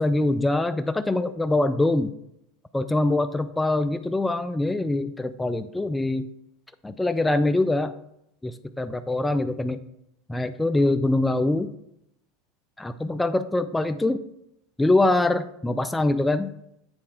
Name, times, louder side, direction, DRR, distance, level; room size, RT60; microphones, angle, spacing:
voice 1, 0.0-2.1 2.7-6.3 6.8-7.9 8.4-9.8 10.3-11.7 12.8-14.2 14.8-16.5, left 2 dB, 10° left, 10 dB, 0.4 m, -23 dB
8.0 x 4.2 x 4.7 m, 0.78 s
hypercardioid pair, 95°, 0 cm